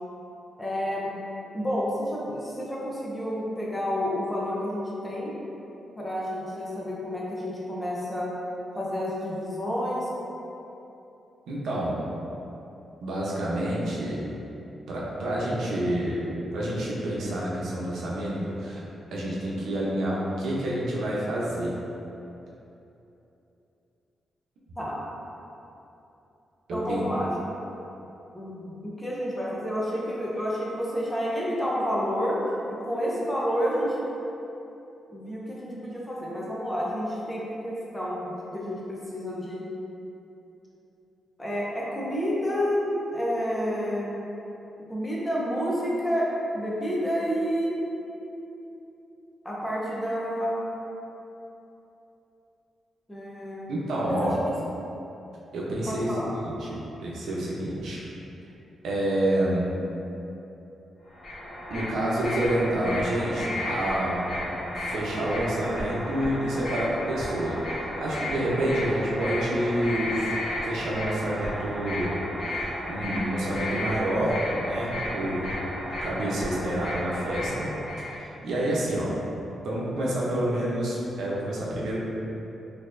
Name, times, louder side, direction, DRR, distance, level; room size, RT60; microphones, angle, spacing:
voice 1, 0.6-1.1 1.5-5.3 6.0-8.3 8.7-10.1 24.8-25.0 26.7-27.6 28.3-32.4 32.7-34.1 35.1-39.7 41.4-44.2 44.9-46.3 46.5-47.9 49.4-50.6 53.1-53.7 54.1-54.3 55.9-56.3, equal, 10° left, -6 dB, 0.5 m, -29 dB
voice 2, 11.5-12.0 13.0-14.2 14.9-18.8 19.1-21.7 26.7-27.0 53.7-54.4 55.5-58.0 58.8-59.7 61.7-64.3 64.8-70.3 70.6-74.4 74.6-75.5 76.0-77.7 78.1-79.1 79.5-82.0, right 1 dB, 80° right, -6 dB, 0.7 m, -28 dB
sound 1, 61.1-78.2, left 1 dB, 45° left, 1.1 m, -33 dB
4.1 x 2.7 x 2.5 m, 2.9 s
wide cardioid pair, 165°, 0 cm